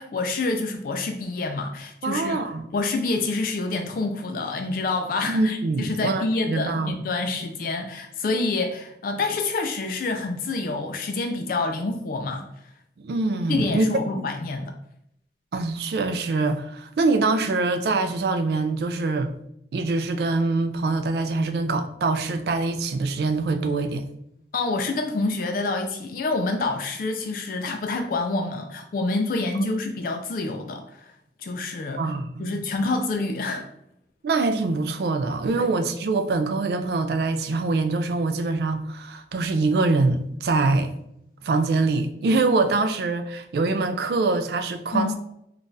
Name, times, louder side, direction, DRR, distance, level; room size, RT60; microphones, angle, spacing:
voice 1, 0.0-2.4 2.7-12.5 13.5-14.7 24.5-31.1 31.4-32.0 32.4-33.7 35.6-35.7 44.9-45.2, left 3 dB, 50° left, 0.3 m, -27 dB
voice 2, 2.0-2.7 5.3-7.0 13.0-13.9 15.5-19.3 19.7-24.0 32.0-32.6 34.2-40.9 41.4-45.2, right 3 dB, 60° right, 0.3 m, -24 dB
3.8 x 2.3 x 2.6 m
head